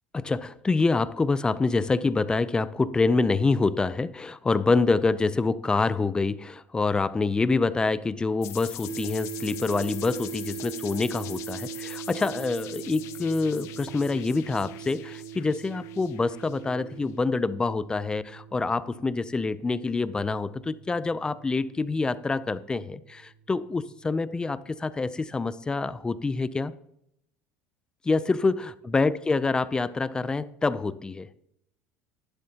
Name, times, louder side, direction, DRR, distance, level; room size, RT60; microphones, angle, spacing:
voice 1, 0.1-26.7 28.0-31.3, left 3 dB, 15° left, 0.5 m, -26 dB
sound 1, 8.4-16.9, left 14 dB, 60° left, 0.9 m, -43 dB
sound 2, 8.8-24.1, right 12 dB, 60° right, 2.2 m, -41 dB
11.5 x 11.5 x 2.9 m
supercardioid pair, 125°, 6 cm